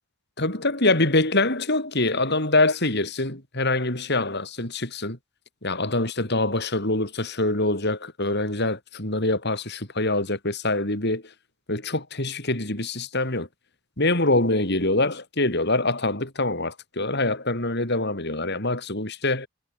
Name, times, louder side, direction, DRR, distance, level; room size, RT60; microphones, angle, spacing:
voice 1, 0.4-5.2 5.6-11.2 11.7-13.5 14.0-19.5, left 2 dB, 50° left, 6.2 m, -24 dB
head